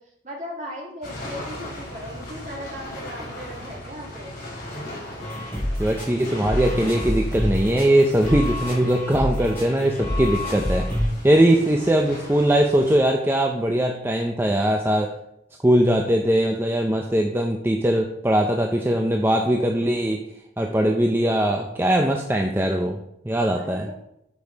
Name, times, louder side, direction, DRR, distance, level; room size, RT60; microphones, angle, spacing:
voice 1, 0.2-4.3 11.3-11.9 23.6-24.0, equal, 40° right, -2 dB, 2.3 m, -38 dB
sound 1, 1.0-12.9, left 1 dB, 50° left, 3.5 m, -38 dB
sound 2, 5.2-11.1, left 1 dB, 10° left, 3.8 m, -27 dB
voice 2, 5.8-10.9 11.2-15.1 15.6-20.3 20.6-23.0 23.2-23.9, right 1 dB, 10° right, 2 dB, 0.5 m, -21 dB
8.6 x 6.2 x 4.6 m, 0.80 s
head